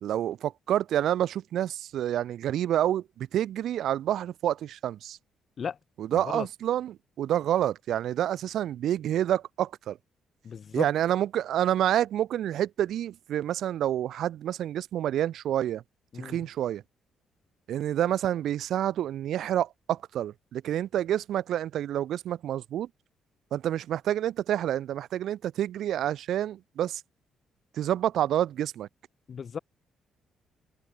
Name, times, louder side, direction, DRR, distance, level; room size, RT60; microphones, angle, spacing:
voice 1, 0.0-5.2 6.0-10.0 10.7-15.8 16.2-16.8 17.7-22.9 23.5-27.0 27.7-28.9, right 11 dB, 75° right, 0.8 m, -28 dB
voice 2, 6.1-6.5 10.4-10.9 16.1-16.4 29.3-29.6, left 7 dB, 50° left, 0.7 m, -35 dB
open air
cardioid pair, 90°, 0 cm